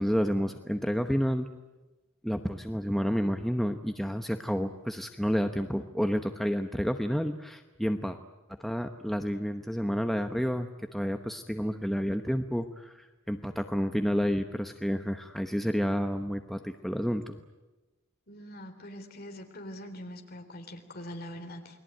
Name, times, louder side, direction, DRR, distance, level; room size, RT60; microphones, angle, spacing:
voice 1, 0.0-1.5 2.2-8.2 8.6-17.4, equal, ahead, 6 dB, 0.9 m, -30 dB
voice 2, 18.3-21.8, equal, 45° left, 5 dB, 3.6 m, -43 dB
29.0 x 20.5 x 9.2 m, 1.1 s
head